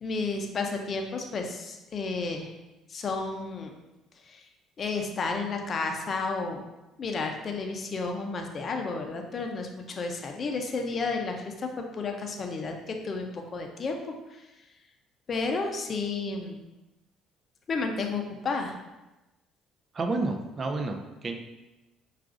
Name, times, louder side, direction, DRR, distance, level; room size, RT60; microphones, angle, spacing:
voice 1, 0.0-2.5 2.9-3.7 4.2-4.4 4.8-6.6 7.0-14.0 14.3-14.5 15.3-16.6 17.7-18.7, left 4 dB, 40° left, 3 dB, 0.6 m, -32 dB
voice 2, 19.9-21.3, right 3 dB, 35° right, 4 dB, 0.4 m, -30 dB
5.9 x 2.4 x 2.5 m, 1.0 s
supercardioid pair, 90°, 0 cm